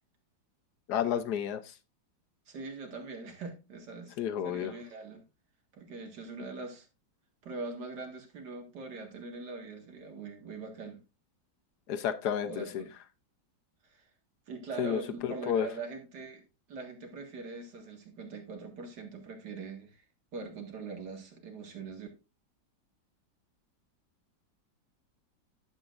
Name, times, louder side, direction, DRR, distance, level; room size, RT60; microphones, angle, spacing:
voice 1, 0.9-1.7 4.2-4.7 11.9-12.8 14.8-15.7, left 9 dB, 65° left, 10 dB, 1.2 m, -31 dB
voice 2, 2.5-4.2 4.4-5.2 5.7-6.9 7.4-11.0 12.5-12.9 13.9-14.1 14.5-16.4 16.7-20.0 20.3-22.1, right 3 dB, 60° right, 3 dB, 2.3 m, -42 dB
11.0 x 8.0 x 2.5 m, 0.28 s
omnidirectional pair, 2.1 m